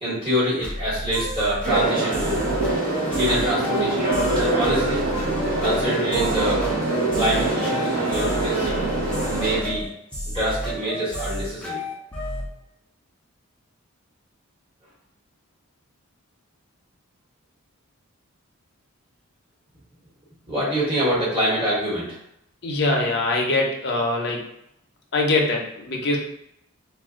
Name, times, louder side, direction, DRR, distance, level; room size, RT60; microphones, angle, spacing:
voice 1, 0.0-2.4 3.1-4.1 4.4-5.0 5.6-6.7 7.1-8.8 9.3-9.9 10.3-11.8 20.5-22.1, equal, 25° right, -9 dB, 1.3 m, -25 dB
sound 1, 0.6-12.5, equal, 5° left, 0.4 m, -31 dB
sound 2, 1.6-9.6, right 2 dB, 40° right, 0.8 m, -24 dB
voice 2, 22.6-24.5 25.1-26.2, left 2 dB, 50° left, 0 dB, 0.6 m, -23 dB
2.4 x 2.3 x 3.6 m, 0.78 s
head